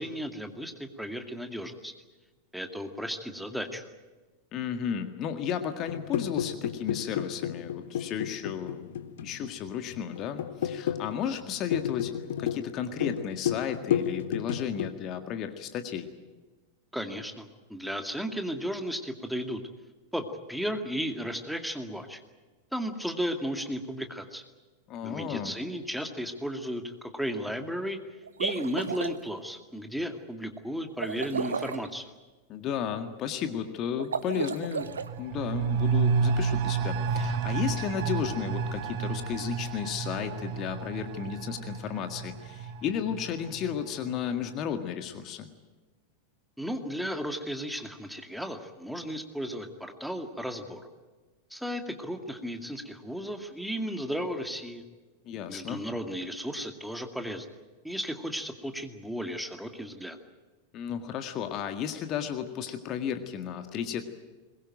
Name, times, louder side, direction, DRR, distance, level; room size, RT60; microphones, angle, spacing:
voice 1, 0.0-1.9 2.5-3.9 16.9-19.6 20.1-22.2 22.7-24.4 25.0-28.0 28.4-32.1 46.6-50.9 51.5-54.8 55.5-57.5 57.8-60.2, equal, ahead, 6 dB, 2.3 m, -34 dB
voice 2, 4.5-8.9 9.2-12.1 12.4-16.1 24.9-25.5 32.5-45.5 55.3-55.8 60.7-64.1, left 8 dB, 35° left, 7 dB, 1.8 m, -33 dB
sound 1, 5.9-14.9, left 9 dB, 60° left, 1.2 m, -32 dB
sound 2, 28.2-29.2 31.0-31.9 34.0-35.1, right 6 dB, 70° right, 1.1 m, -33 dB
sound 3, 34.8-44.2 44.5-44.6, right 5 dB, 45° right, 1.5 m, -31 dB
22.5 x 21.0 x 9.0 m, 1.3 s
figure-of-eight pair, 90°, 0 cm